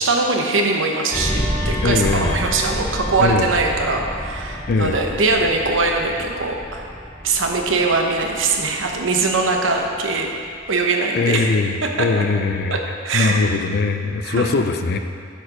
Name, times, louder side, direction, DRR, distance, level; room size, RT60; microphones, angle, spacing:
voice 1, 0.0-6.9 7.2-10.3 10.7-11.5 12.0-12.1 12.7-13.3 14.2-14.5, right 3 dB, 80° right, 2 dB, 0.9 m, -21 dB
sound 1, 1.1-10.1 10.5-10.7, equal, 5° left, 0.7 m, -29 dB
voice 2, 1.8-2.4 3.2-3.5 4.7-5.0 11.1-12.8 13.1-15.0, left 4 dB, 55° left, 7 dB, 0.4 m, -21 dB
8.4 x 4.9 x 5.0 m, 2.2 s
head